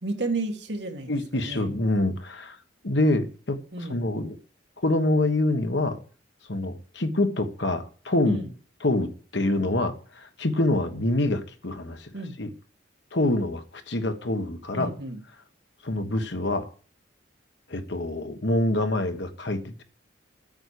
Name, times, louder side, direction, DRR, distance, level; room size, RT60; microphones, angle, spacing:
voice 1, 0.0-1.7 3.7-4.0 8.2-8.5 12.1-12.4 14.7-15.2, right 2 dB, 65° right, 4 dB, 2.1 m, -32 dB
voice 2, 1.1-2.6 2.8-3.6 3.9-4.4 4.8-6.0 6.5-8.4 8.8-12.1 12.4-12.5 13.1-14.9 15.8-16.7 17.7-19.8, left 1 dB, 70° left, 8 dB, 1.4 m, -26 dB
9.0 x 6.3 x 8.4 m, 0.40 s
head